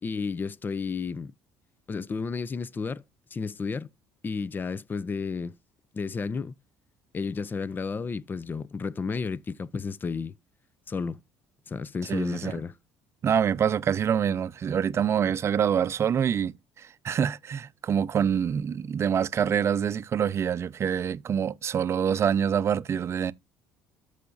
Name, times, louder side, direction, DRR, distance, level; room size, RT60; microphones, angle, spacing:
voice 1, 0.0-1.3 1.9-3.0 3.3-3.9 4.2-5.6 5.9-6.5 7.1-10.3 10.9-11.2 11.7-12.7, left 5 dB, 30° left, 0.6 m, -32 dB
voice 2, 12.1-12.6 13.2-16.5 16.8-23.3, right 8 dB, 40° right, 0.6 m, -26 dB
14.0 x 4.9 x 2.5 m
supercardioid pair, 85°, 7 cm